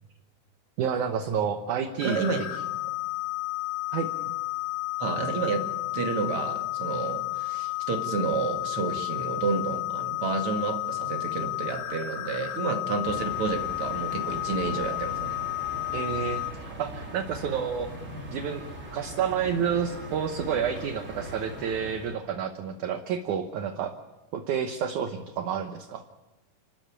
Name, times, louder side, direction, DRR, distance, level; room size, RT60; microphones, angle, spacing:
voice 1, 0.8-2.5 3.9-4.1 15.9-17.9 18.3-18.6 18.9-24.0 24.3-26.0, right 7 dB, 65° right, 7 dB, 2.3 m, -30 dB
sound 1, 2.0-16.5, left 20 dB, 90° left, 3.2 m, -32 dB
voice 2, 2.0-2.4 5.0-5.7 5.9-15.4, right 4 dB, 40° right, 3 dB, 2.9 m, -30 dB
sound 2, 13.0-22.2, right 1 dB, 20° right, 3.6 m, -40 dB
29.5 x 14.0 x 8.8 m, 1.1 s
omnidirectional pair, 4.0 m